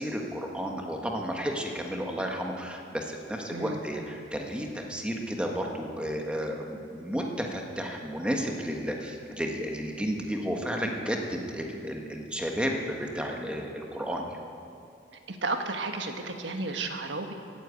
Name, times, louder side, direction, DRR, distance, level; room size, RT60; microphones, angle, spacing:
voice 1, 0.0-14.4, equal, 5° right, 1 dB, 1.4 m, -32 dB
voice 2, 15.3-17.3, right 3 dB, 85° right, 5 dB, 1.4 m, -32 dB
17.0 x 9.1 x 8.3 m, 2.6 s
head